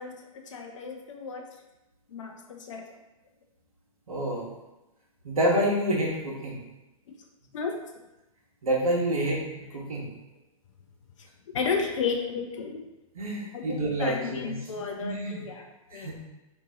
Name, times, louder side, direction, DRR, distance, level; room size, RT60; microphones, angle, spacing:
voice 1, 0.0-1.4 2.1-2.8 7.5-7.8 11.5-12.8 13.5-16.1, left 5 dB, 60° left, 3 dB, 0.6 m, -33 dB
voice 2, 4.1-4.4 5.2-6.6 8.6-10.1 13.1-14.6 15.0-15.4 15.9-16.1, right 1 dB, 75° right, -3 dB, 1.2 m, -28 dB
3.0 x 2.7 x 3.6 m, 0.98 s
figure-of-eight pair, 110°, 18 cm